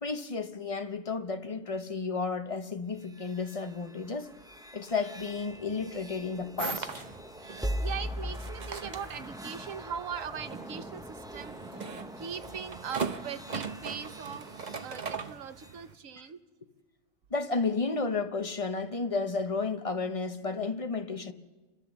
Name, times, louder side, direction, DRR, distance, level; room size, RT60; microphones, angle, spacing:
voice 1, 0.0-4.3 4.7-7.0 17.3-21.3, left 4 dB, 30° left, 0.8 m, -32 dB
sound 1, 2.9-15.8, equal, 5° right, 0.4 m, -41 dB
sound 2, 6.6-15.9, right 5 dB, 40° right, 0.8 m, -40 dB
voice 2, 7.4-11.9 12.2-14.5 14.8-16.4, right 7 dB, 80° right, 1.3 m, -40 dB
29.5 x 13.0 x 7.2 m
omnidirectional pair, 1.4 m